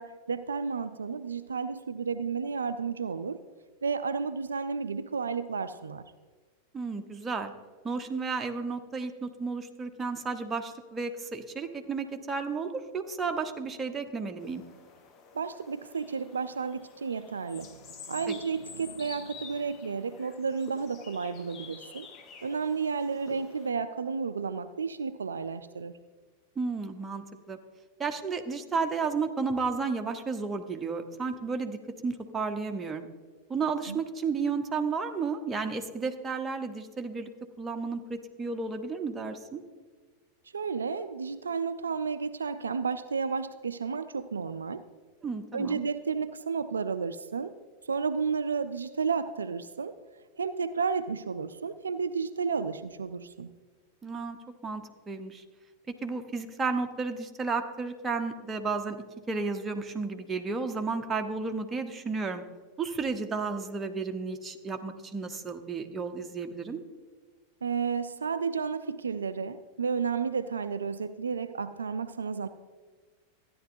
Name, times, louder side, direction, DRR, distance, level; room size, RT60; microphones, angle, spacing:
voice 1, 0.0-3.4 3.8-6.1 15.3-17.7 18.1-22.1 22.4-25.9 33.9-34.0 40.5-44.8 45.5-47.5 47.9-50.0 50.4-53.5 67.6-72.5, right 5 dB, 70° right, 11 dB, 0.3 m, -32 dB
voice 2, 6.7-7.5 7.8-14.6 18.3-18.4 26.6-27.6 28.0-31.8 32.0-33.1 33.5-37.3 37.6-39.6 45.2-45.8 54.0-54.4 54.6-55.4 56.0-59.0 59.3-62.4 62.8-66.8, right 4 dB, 15° right, 5 dB, 0.8 m, -32 dB
sound 1, 14.4-23.7, left 5 dB, 35° left, 0.9 m, -49 dB
13.5 x 10.0 x 2.6 m, 1.4 s
figure-of-eight pair, 90°, 0 cm